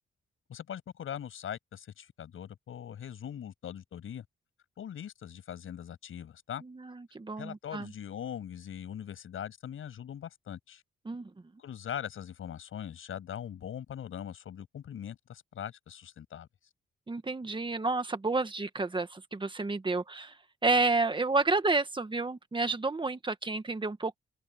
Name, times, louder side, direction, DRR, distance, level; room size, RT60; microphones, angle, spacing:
voice 1, 0.5-4.2 4.8-6.6 7.4-10.8 11.6-16.5, left 9 dB, 80° left, 7.0 m, -41 dB
voice 2, 6.6-7.9 11.0-11.3 17.1-20.3 20.6-24.2, right 3 dB, 25° right, 1.5 m, -30 dB
wide cardioid pair, 115°, 21 cm